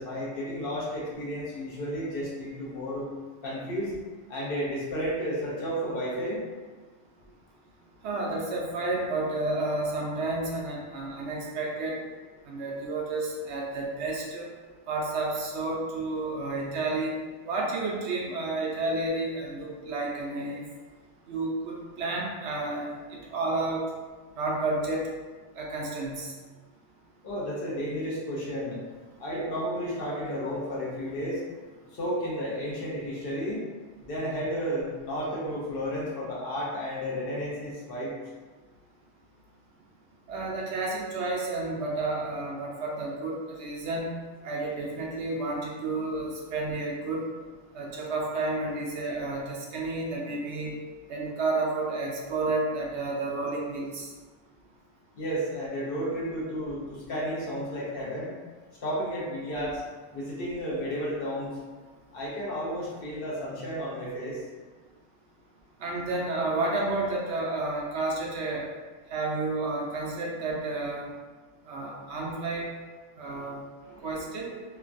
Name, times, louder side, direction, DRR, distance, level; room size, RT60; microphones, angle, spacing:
voice 1, 0.0-3.1 3.4-4.0 4.3-6.4 27.2-28.8 29.2-31.4 31.9-33.6 34.0-38.1 55.2-58.3 58.8-59.8 60.1-61.6 62.1-64.4 73.3-73.6 73.9-74.2, equal, 55° left, -6 dB, 0.8 m, -32 dB
voice 2, 8.0-12.0 12.4-14.5 14.9-17.1 17.5-20.7 21.3-23.9 24.4-25.0 25.5-26.3 40.3-44.1 44.4-47.2 47.7-50.7 51.1-54.1 65.8-68.7 69.1-71.1 71.7-72.6 73.2-73.6 74.0-74.5, right 2 dB, 75° right, -2 dB, 0.8 m, -31 dB
3.2 x 2.2 x 2.5 m, 1.4 s
omnidirectional pair, 1.2 m